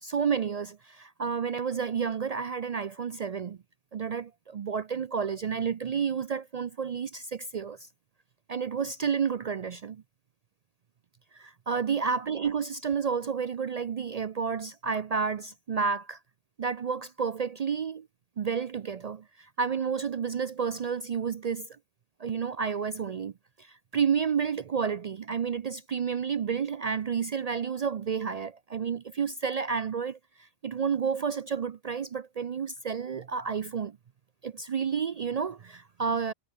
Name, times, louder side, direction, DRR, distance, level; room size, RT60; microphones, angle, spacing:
voice 1, 0.0-3.6 3.9-7.8 8.5-10.0 11.3-16.2 16.6-18.1 18.4-21.7 22.2-23.3 23.6-34.0 34.4-36.3, right 6 dB, 75° right, 0.3 m, -30 dB
omnidirectional pair, 1.3 m